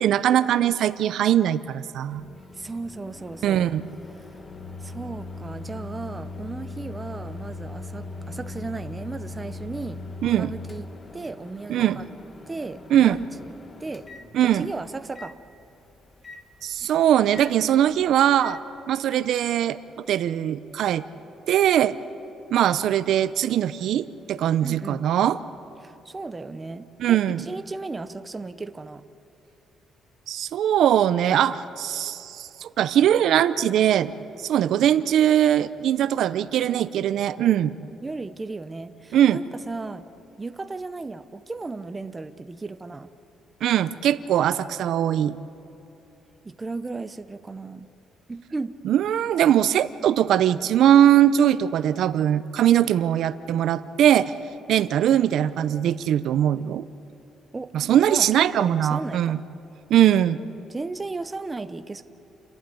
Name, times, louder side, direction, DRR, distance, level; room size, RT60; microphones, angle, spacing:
voice 1, 0.0-2.2 3.4-3.9 10.2-10.5 11.7-12.0 12.9-13.2 14.3-14.7 16.6-18.6 18.9-19.8 20.1-21.0 21.5-22.0 22.5-25.4 27.0-27.4 30.3-34.1 34.4-37.7 39.1-39.4 43.6-45.4 48.8-54.3 54.7-56.8 57.7-59.4 59.9-60.4, right 10 dB, 65° right, 14 dB, 0.6 m, -21 dB
Microwave oven, 2.1-18.6, left 3 dB, 20° left, 1.2 m, -40 dB
voice 2, 2.6-3.7 4.8-10.0 10.4-10.9 11.1-12.1 12.5-13.5 13.8-14.1 14.4-15.4 24.6-25.0 25.8-29.0 38.0-40.1 40.4-43.1 46.4-47.9 48.3-48.8 57.5-57.7 58.1-59.5 60.7-62.0, right 3 dB, 15° right, 10 dB, 0.6 m, -35 dB
29.5 x 11.5 x 9.8 m, 2.9 s
cardioid pair, 165°, 0 cm